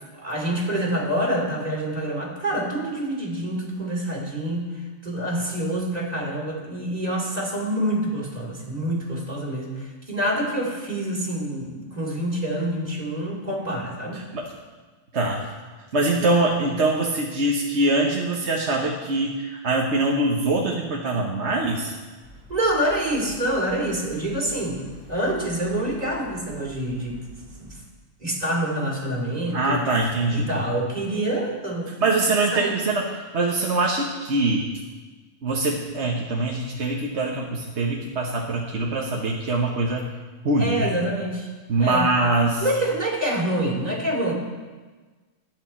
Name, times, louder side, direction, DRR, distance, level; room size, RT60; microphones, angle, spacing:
voice 1, 0.1-14.2 22.5-24.8 25.1-27.2 27.6-27.7 28.2-29.8 30.3-32.3 32.5-32.8 40.6-41.5 41.8-42.1 42.6-44.3, right 1 dB, 30° right, -2 dB, 3.2 m, -26 dB
voice 2, 15.1-15.5 15.9-21.9 29.5-30.6 32.0-33.1 33.3-34.7 35.4-40.1 40.4-40.9 41.7-42.6, right 2 dB, 55° right, -1 dB, 1.4 m, -23 dB
sound 1, 22.2-27.8, right 1 dB, 5° left, 4.8 m, -46 dB
22.5 x 8.5 x 4.4 m, 1.3 s
omnidirectional pair, 1.4 m